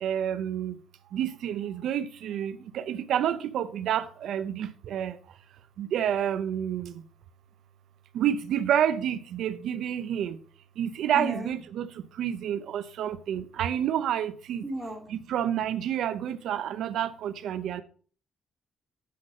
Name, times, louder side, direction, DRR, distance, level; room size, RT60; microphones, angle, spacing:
voice 1, 0.0-0.7 1.1-5.2 5.8-6.9 8.1-10.4 10.8-11.9 12.2-14.6 15.1-17.8, right 10 dB, 75° right, 0.6 m, -29 dB
voice 2, 11.1-11.5 14.6-15.1, equal, 5° right, 2.6 m, -35 dB
8.4 x 5.9 x 6.3 m
cardioid pair, 90°, 0 cm